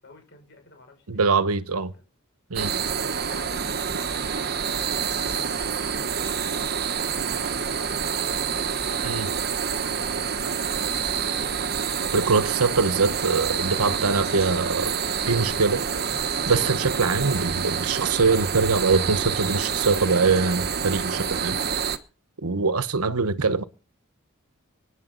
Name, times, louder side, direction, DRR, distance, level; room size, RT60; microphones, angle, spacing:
voice 1, 0.0-2.0 2.7-5.2 5.9-8.5 9.0-11.0, left 2 dB, 50° left, 6.4 m, -51 dB
voice 2, 1.1-1.9 2.5-2.7 9.0-9.3 12.1-14.9 15.3-15.8 16.1-21.6 22.4-23.6, right 4 dB, 85° right, 1.1 m, -23 dB
sound 1, 2.6-22.0, right 6 dB, 45° right, 1.1 m, -27 dB
24.5 x 10.0 x 4.0 m
head